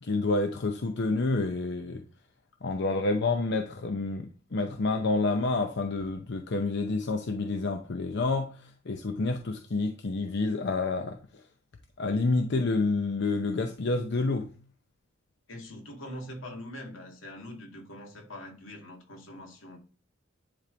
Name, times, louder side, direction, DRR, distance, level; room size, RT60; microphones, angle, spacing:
voice 1, 0.0-2.0 2.6-8.6 8.9-11.2 12.0-14.5, left 3 dB, 60° left, 0.7 m, -28 dB
voice 2, 15.5-19.8, left 1 dB, 80° left, 2.1 m, -43 dB
10.5 x 3.5 x 3.9 m
head